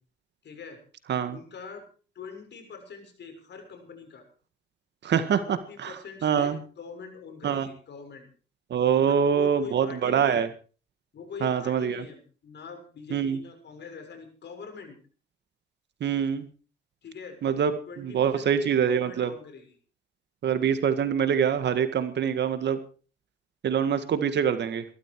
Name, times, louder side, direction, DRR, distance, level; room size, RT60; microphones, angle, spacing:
voice 1, 0.4-0.8 1.3-1.8 2.1-4.2 5.4-8.3 8.9-10.4 11.1-15.0 17.0-17.4 17.9-19.7, left 5 dB, 60° left, 6 dB, 6.6 m, -43 dB
voice 2, 5.0-6.6 7.4-7.7 8.7-10.5 11.4-12.0 13.1-13.4 16.0-16.5 17.4-17.7 18.0-19.3 20.4-22.8 23.6-24.8, right 8 dB, 60° right, 10 dB, 1.9 m, -25 dB
21.5 x 13.5 x 4.8 m, 0.40 s
cardioid pair, 90°, 20 cm